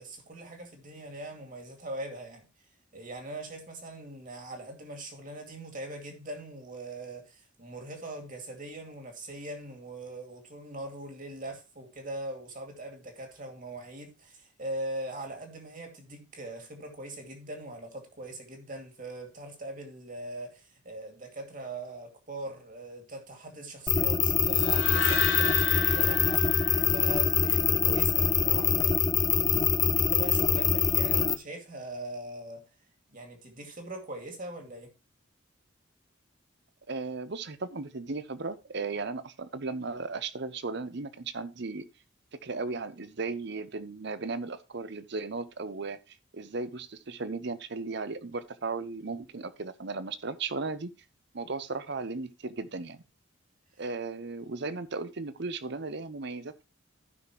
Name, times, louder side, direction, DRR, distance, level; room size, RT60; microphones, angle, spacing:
voice 1, 0.0-2.5 2.9-28.9 29.9-32.7 33.1-34.9, right 1 dB, 40° right, 2.2 m, -41 dB
sound 1, 23.9-31.3, left 6 dB, 20° left, 0.4 m, -24 dB
sound 2, 24.5-27.7, left 3 dB, 85° left, 1.5 m, -33 dB
voice 2, 36.9-41.9 42.4-50.9 51.3-53.0 53.8-56.6, right 3 dB, 55° right, 0.8 m, -36 dB
14.5 x 5.8 x 3.0 m
head